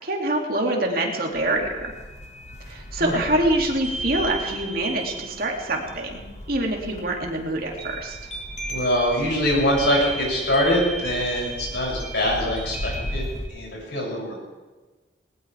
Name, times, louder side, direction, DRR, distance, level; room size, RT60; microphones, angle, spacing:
voice 1, 0.0-1.9 2.6-8.2, right 1 dB, 55° right, 0 dB, 2.7 m, -25 dB
sound 1, 1.3-13.5, right 1 dB, 40° left, 1.8 m, -34 dB
voice 2, 8.7-14.3, equal, 70° left, -3 dB, 7.4 m, -24 dB
20.0 x 20.0 x 3.5 m, 1.3 s
head